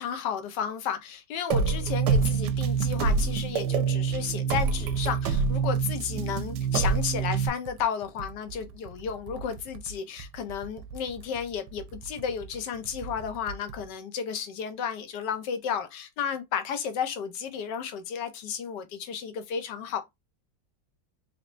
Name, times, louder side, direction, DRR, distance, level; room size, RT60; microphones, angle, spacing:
voice 1, 0.0-20.0, left 7 dB, 70° left, 1.3 m, -33 dB
sound 1, 1.5-7.5, right 5 dB, 70° right, 1.1 m, -26 dB
Computer keyboard, 2.1-3.3 3.7-3.8 4.1-14.0, right 5 dB, 90° right, 1.4 m, -44 dB
4.0 x 3.3 x 2.5 m
omnidirectional pair, 2.1 m